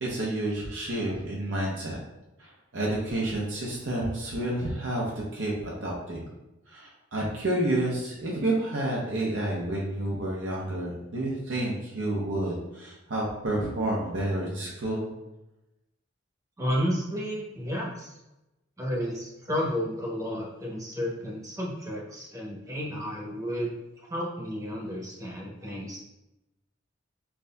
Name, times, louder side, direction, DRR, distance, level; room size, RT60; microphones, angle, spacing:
voice 1, 0.0-2.0 2.4-5.1 5.3-6.3 6.7-15.1, right 1 dB, 70° right, -4 dB, 0.8 m, -30 dB
voice 2, 16.6-18.1 18.8-23.7 24.1-26.0, equal, 15° right, -4 dB, 0.9 m, -32 dB
5.7 x 2.7 x 2.2 m, 0.95 s
head